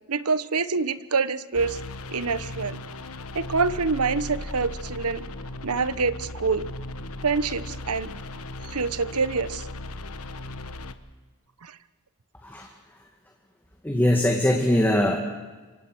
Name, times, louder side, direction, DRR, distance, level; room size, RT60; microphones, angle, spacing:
voice 1, 0.1-1.8 2.1-2.8 3.3-5.2 5.6-6.7 7.2-8.1 8.6-9.7 11.6-11.8, right 4 dB, 80° right, 15 dB, 1.1 m, -26 dB
sound 1, 1.5-10.9, left 2 dB, 70° left, 1.3 m, -37 dB
voice 2, 13.8-15.2, left 1 dB, 10° left, 1 dB, 2.1 m, -21 dB
27.0 x 24.0 x 6.3 m, 1.3 s
head